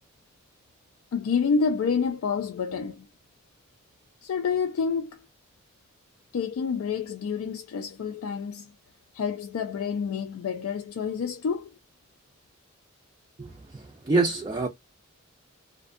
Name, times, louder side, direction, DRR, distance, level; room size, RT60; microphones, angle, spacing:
voice 1, 1.1-3.1 4.2-5.2 6.3-8.7 9.1-11.8, left 5 dB, 80° left, 0.3 m, -28 dB
voice 2, 13.4-14.7, right 3 dB, 20° right, 0.3 m, -26 dB
2.5 x 2.1 x 2.4 m
head